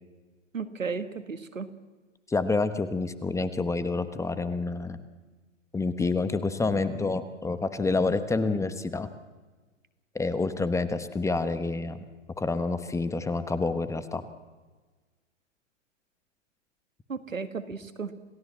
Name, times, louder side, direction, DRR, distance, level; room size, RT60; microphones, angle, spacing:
voice 1, 0.5-1.7 17.1-18.1, right 5 dB, 90° right, 11 dB, 1.8 m, -34 dB
voice 2, 2.3-5.0 5.7-9.1 10.1-12.0 12.4-14.2, left 3 dB, 10° left, 11 dB, 1.2 m, -28 dB
27.5 x 17.5 x 7.5 m, 1.3 s
hypercardioid pair, 115°, 38 cm